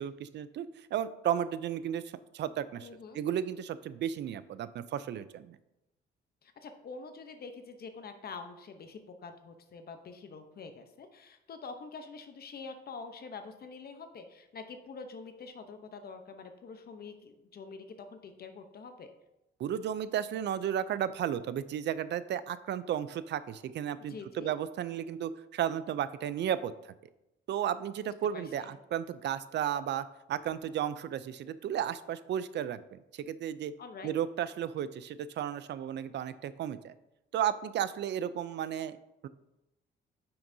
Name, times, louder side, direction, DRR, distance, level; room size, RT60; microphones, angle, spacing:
voice 1, 0.0-2.0 2.3-2.9 3.1-5.6 19.6-26.7 27.5-33.7 34.0-36.9 37.3-39.0 39.2-39.3, right 10 dB, 60° right, 15 dB, 0.4 m, -34 dB
voice 2, 2.8-3.2 6.4-19.1 24.1-24.5 28.3-28.7 33.8-34.1, left 4 dB, 50° left, 7 dB, 0.8 m, -46 dB
8.9 x 5.8 x 2.7 m, 0.91 s
cardioid pair, 90°, 20 cm